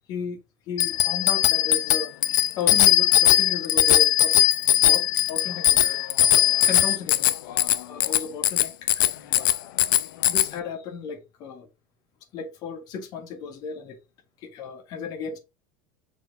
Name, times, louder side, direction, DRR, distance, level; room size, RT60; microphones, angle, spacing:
voice 1, 0.1-0.4 0.7-4.4 4.9-6.0 6.7-9.5 10.3-11.7 12.3-14.0 14.4-15.4, left 5 dB, 40° left, 1.8 m, -35 dB
Bicycle bell, 0.8-10.5, left 14 dB, 85° left, 0.6 m, -20 dB
6.3 x 4.5 x 3.7 m
supercardioid pair, 165°, 11 cm